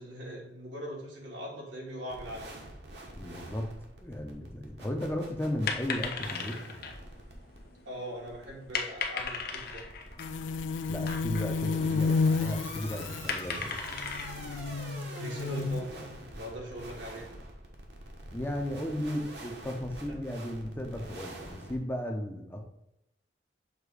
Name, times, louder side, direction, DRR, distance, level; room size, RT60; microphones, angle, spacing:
voice 1, 0.0-2.5 7.9-9.9 15.1-16.0 16.3-17.3 20.1-20.2, equal, 90° right, -3 dB, 2.2 m, -40 dB
sound 1, 2.1-21.8, right 1 dB, 65° right, 1.2 m, -46 dB
voice 2, 3.1-3.7 4.0-6.6 10.9-13.8 18.3-22.6, left 1 dB, 15° left, 3 dB, 0.7 m, -35 dB
sound 2, 5.6-16.1, left 5 dB, 55° left, 0.7 m, -38 dB
sound 3, 10.2-15.8, left 4 dB, 90° left, 0.3 m, -31 dB
6.6 x 2.9 x 4.8 m, 0.85 s
head